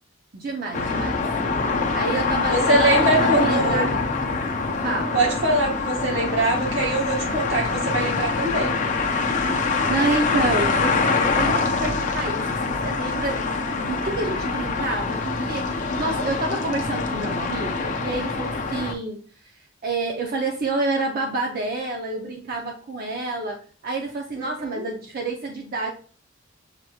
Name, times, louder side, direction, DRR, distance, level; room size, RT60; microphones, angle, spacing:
voice 1, 0.3-1.2 1.7-3.9 4.8-5.2 9.5-13.5 13.8-19.2 19.8-25.9, right 2 dB, 50° right, 1 dB, 0.6 m, -28 dB
sound 1, 0.7-18.9, left 4 dB, 40° left, 0.6 m, -24 dB
voice 2, 2.5-4.0 5.1-8.8 24.3-24.8, right 2 dB, 85° right, 0 dB, 1.3 m, -23 dB
6.4 x 3.0 x 2.3 m, 0.41 s
head